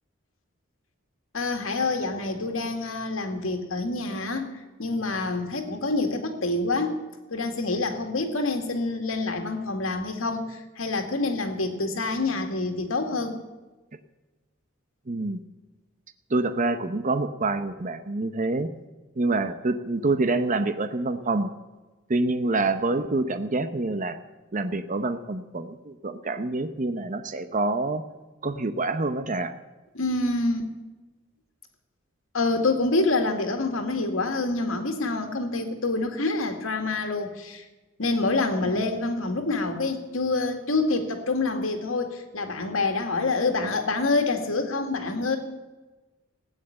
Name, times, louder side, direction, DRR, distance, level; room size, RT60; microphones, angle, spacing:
voice 1, 1.3-4.5 4.8-7.0 7.3-13.4 29.9-30.7 32.3-37.6 38.0-45.4, left 3 dB, 85° left, 5 dB, 2.2 m, -27 dB
voice 2, 15.1-15.4 16.3-18.7 19.2-21.5 22.1-24.2 24.5-28.0 28.4-29.5 38.6-38.9, right 2 dB, 40° right, 9 dB, 0.8 m, -26 dB
15.5 x 9.3 x 8.8 m, 1.2 s
head